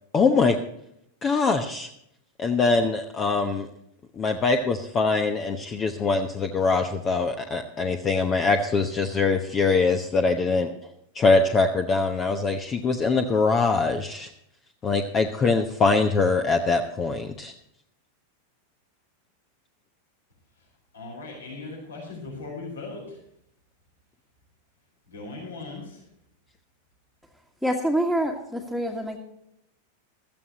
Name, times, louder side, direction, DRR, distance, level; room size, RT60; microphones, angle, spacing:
voice 1, 0.1-0.6 1.2-1.9 2.4-3.7 4.2-10.7 11.1-14.3 14.8-17.5, left 4 dB, 25° left, 6 dB, 1.0 m, -23 dB
voice 2, 20.9-23.2 25.1-26.0, left 3 dB, 70° left, -1 dB, 4.9 m, -38 dB
voice 3, 27.6-29.2, right 1 dB, 5° left, 0 dB, 1.7 m, -26 dB
16.0 x 14.0 x 3.0 m, 0.76 s
figure-of-eight pair, 90°, 0 cm